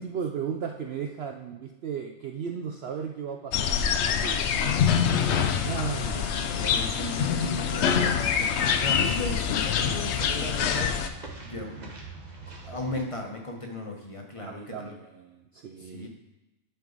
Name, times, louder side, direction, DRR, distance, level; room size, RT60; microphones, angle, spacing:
voice 1, 0.0-4.5 5.6-6.7 14.4-16.1, right 7 dB, 60° right, 3 dB, 0.7 m, -35 dB
sound 1, 3.5-11.1, left 7 dB, 65° left, 0.8 m, -25 dB
voice 2, 6.1-8.5 8.8-11.1 11.4-11.9 12.6-14.7 15.9-16.1, left 2 dB, 25° left, 1 dB, 0.9 m, -36 dB
sound 2, 6.5-13.1, right 4 dB, 35° right, 1.2 m, -44 dB
10.5 x 4.6 x 3.9 m, 1.0 s
omnidirectional pair, 1.4 m